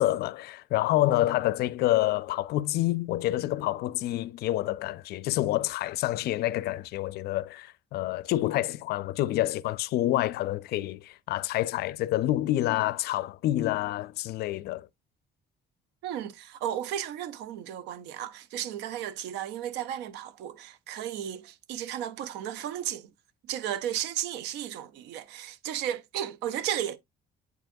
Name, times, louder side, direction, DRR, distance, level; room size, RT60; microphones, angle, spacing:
voice 1, 0.0-14.9, left 15 dB, 70° left, 0.4 m, -28 dB
voice 2, 16.0-23.1 23.4-27.0, right 10 dB, 90° right, 0.6 m, -34 dB
8.1 x 4.5 x 2.6 m
cardioid pair, 110°, 17 cm